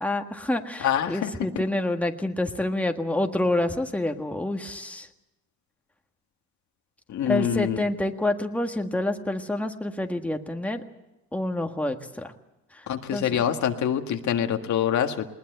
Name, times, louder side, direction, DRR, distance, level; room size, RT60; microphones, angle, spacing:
voice 1, 0.0-5.1 7.3-10.8 11.3-12.3 12.7-12.9 13.1-13.4, left 1 dB, 5° left, 4 dB, 1.7 m, -28 dB
voice 2, 0.8-1.3 7.1-7.8 12.9-15.2, left 9 dB, 70° left, 5 dB, 1.8 m, -25 dB
20.5 x 20.0 x 8.0 m, 0.98 s
cardioid pair, 90°, 30 cm